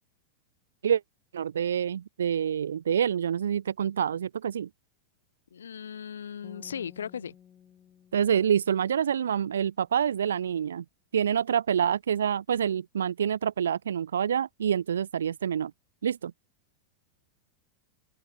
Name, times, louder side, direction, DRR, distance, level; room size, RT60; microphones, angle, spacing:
voice 1, 1.3-4.7 8.1-10.8 11.1-15.7 16.0-16.3, right 8 dB, 65° right, 0.6 m, -27 dB
voice 2, 5.5-7.3, left 8 dB, 70° left, 2.1 m, -37 dB
sound 1, 6.4-9.6, left 9 dB, 25° left, 7.9 m, -55 dB
open air
figure-of-eight pair, 90°, 0 cm